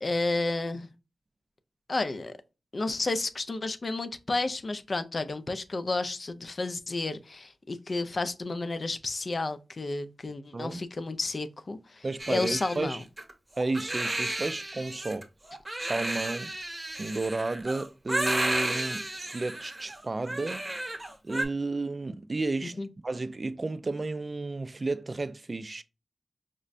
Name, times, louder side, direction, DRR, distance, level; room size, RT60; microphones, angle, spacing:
voice 1, 0.0-0.9 1.9-2.4 2.7-13.0 22.8-22.9, left 2 dB, 45° left, 0.4 m, -31 dB
voice 2, 10.5-10.8 12.0-13.0 13.6-15.3 15.9-16.5 17.0-21.0 21.2-25.8, right 3 dB, 40° right, 0.3 m, -32 dB
Crying sobbing, 12.2-21.4, right 1 dB, 20° right, 1.0 m, -33 dB
5.1 x 2.2 x 2.4 m
wide cardioid pair, 75°, 0 cm